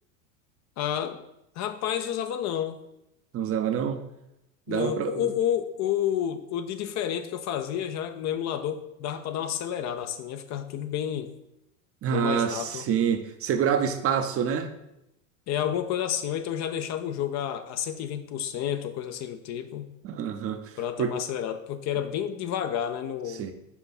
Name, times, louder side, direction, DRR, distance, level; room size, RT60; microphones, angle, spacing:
voice 1, 0.8-1.2 1.6-2.8 4.7-11.3 12.1-12.8 15.5-19.9 20.8-23.4, left 10 dB, 40° left, 9 dB, 0.5 m, -30 dB
voice 2, 3.3-4.0 4.7-5.2 12.0-14.7 20.0-21.2 23.3-23.5, right 8 dB, 35° right, 8 dB, 0.6 m, -27 dB
5.7 x 4.7 x 4.2 m, 0.85 s
hypercardioid pair, 90°, 43 cm